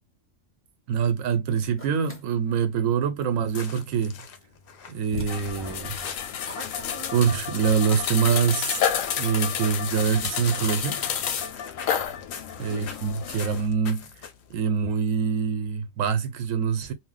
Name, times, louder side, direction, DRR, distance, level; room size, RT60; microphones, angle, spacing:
voice 1, 0.9-4.2 4.9-6.0 7.1-8.8 9.2-11.0 12.6-14.1 14.5-16.9, right 6 dB, 80° right, 1.0 m, -25 dB
sound 1, 1.8-2.2 4.4-4.5 5.1-7.6, left 2 dB, 20° left, 0.4 m, -40 dB
sound 2, 3.4-14.6, left 6 dB, 60° left, 0.6 m, -44 dB
sound 3, 5.3-13.6, left 8 dB, 90° left, 1.0 m, -30 dB
2.4 x 2.1 x 3.8 m
omnidirectional pair, 1.4 m